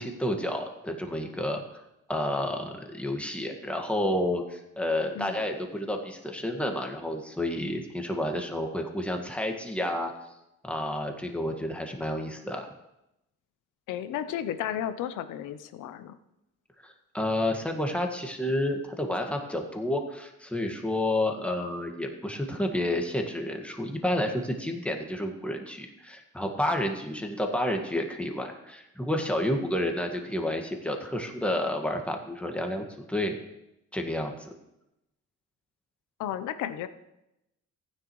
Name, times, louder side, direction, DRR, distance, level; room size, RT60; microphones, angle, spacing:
voice 1, 0.0-1.8 2.1-10.1 10.6-12.6 16.8-33.3 33.9-34.5, left 1 dB, 5° left, 3 dB, 1.7 m, -30 dB
voice 2, 13.9-16.2 36.2-36.9, left 10 dB, 90° left, 11 dB, 0.7 m, -33 dB
15.0 x 9.9 x 3.1 m, 0.88 s
cardioid pair, 90°, 30 cm